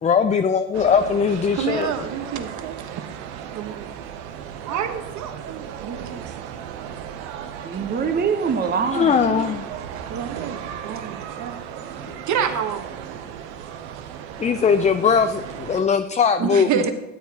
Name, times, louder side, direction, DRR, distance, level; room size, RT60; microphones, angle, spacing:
voice 1, 0.0-1.9 8.9-9.7 14.4-16.7, left 6 dB, 20° left, 8 dB, 0.4 m, -20 dB
sound 1, 0.7-15.8, right 9 dB, 80° right, 0.8 m, -36 dB
voice 2, 1.5-3.1 3.5-3.9 4.7-6.3 9.0-9.4 9.9-11.9 12.3-13.4 16.4-16.9, right 7 dB, 55° right, 8 dB, 1.2 m, -29 dB
voice 3, 7.6-9.6 16.7-16.9, right 5 dB, 25° right, 8 dB, 0.9 m, -25 dB
13.0 x 8.5 x 2.9 m, 0.92 s
supercardioid pair, 80°, 35 cm